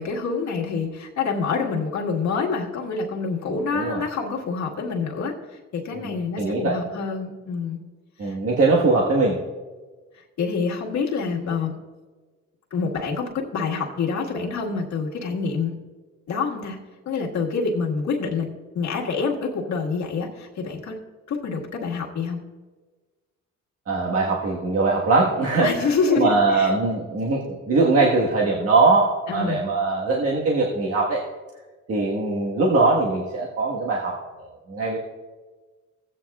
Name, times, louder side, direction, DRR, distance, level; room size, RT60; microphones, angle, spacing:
voice 1, 0.0-7.8 8.2-8.4 10.1-11.8 12.7-15.7 16.3-16.8 17.1-18.5 18.7-21.0 21.3-22.4 25.6-26.7 29.3-29.6, left 5 dB, 65° left, -1 dB, 1.7 m, -27 dB
voice 2, 5.9-6.8 8.2-9.4 23.9-25.7 26.1-31.2 31.9-35.0, right 3 dB, 50° right, -3 dB, 1.5 m, -21 dB
16.0 x 8.7 x 2.4 m, 1.3 s
cardioid pair, 90°, 30 cm